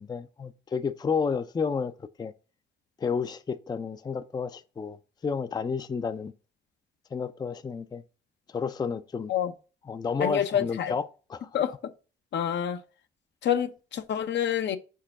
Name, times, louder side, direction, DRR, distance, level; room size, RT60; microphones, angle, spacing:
voice 1, 0.0-1.9 2.2-2.3 3.0-5.0 5.2-6.3 7.1-8.0 8.5-9.3 9.9-11.5, left 5 dB, 20° left, 0.4 m, -31 dB
voice 2, 10.2-10.9 11.5-11.8 12.3-12.8 13.4-14.8, left 9 dB, 65° left, 0.7 m, -27 dB
4.6 x 4.4 x 5.8 m
cardioid pair, 90°, 20 cm